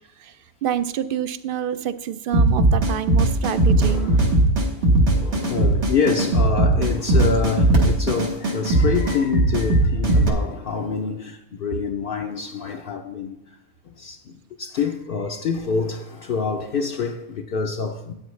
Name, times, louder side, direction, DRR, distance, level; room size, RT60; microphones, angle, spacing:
voice 1, 0.6-4.1, right 9 dB, 60° right, 0.7 m, -27 dB
sound 1, 2.3-10.3, right 2 dB, 80° right, 1.7 m, -18 dB
voice 2, 3.7-4.3 5.1-13.4 13.8-18.1, left 5 dB, 60° left, 0.8 m, -26 dB
13.0 x 8.6 x 3.2 m
omnidirectional pair, 1.1 m